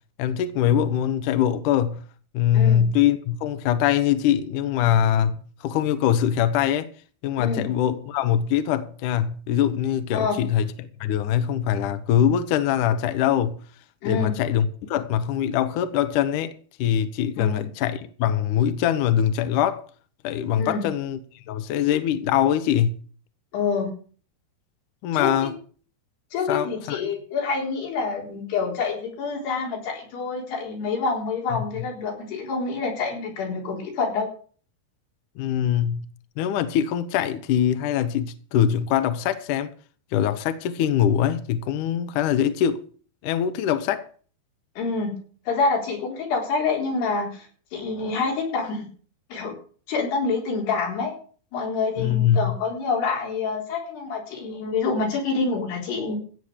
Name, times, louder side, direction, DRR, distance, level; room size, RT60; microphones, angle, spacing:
voice 1, 0.2-2.0 2.3-6.9 7.2-13.6 14.1-16.5 16.8-19.8 20.2-21.2 21.5-22.9 25.0-25.6 26.5-27.0 31.5-31.6 35.4-36.1 36.4-39.7 40.1-42.8 43.2-44.1 52.0-52.6, left 10 dB, 70° left, 2.1 m, -23 dB
voice 2, 2.5-2.8 7.4-7.7 10.1-10.4 14.0-14.3 17.4-17.7 20.6-20.9 23.5-23.9 25.1-25.5 26.3-34.3 44.8-45.2 45.5-47.5 47.7-48.9 49.3-49.5 49.9-51.1 51.5-56.2, left 4 dB, 90° left, 6.2 m, -27 dB
16.0 x 7.2 x 6.5 m
omnidirectional pair, 4.6 m